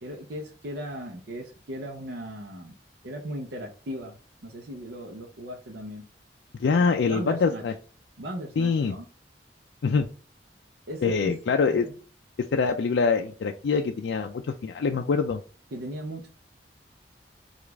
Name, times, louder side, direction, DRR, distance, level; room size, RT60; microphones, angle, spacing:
voice 1, 0.0-2.7 3.0-6.1 6.8-7.6 8.2-9.0 10.9-11.6 11.8-11.9 15.7-16.3, equal, 70° right, 0 dB, 0.7 m, -37 dB
voice 2, 6.6-7.7 8.6-9.0 9.8-10.1 11.0-11.9 12.5-15.4, left 5 dB, 80° left, 5 dB, 0.4 m, -24 dB
4.9 x 2.4 x 3.4 m, 0.37 s
head